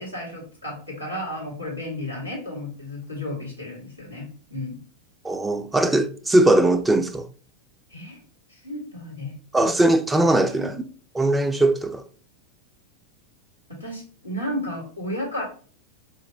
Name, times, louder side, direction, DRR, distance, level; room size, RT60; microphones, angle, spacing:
voice 1, 0.0-4.8 7.9-8.2 8.5-9.7 10.5-10.9 13.7-15.4, left 1 dB, 90° left, 1.7 m, -33 dB
voice 2, 5.2-7.3 9.5-10.8 11.1-12.0, right 1 dB, 10° right, 0.4 m, -20 dB
4.3 x 2.8 x 2.8 m
figure-of-eight pair, 90°, 0 cm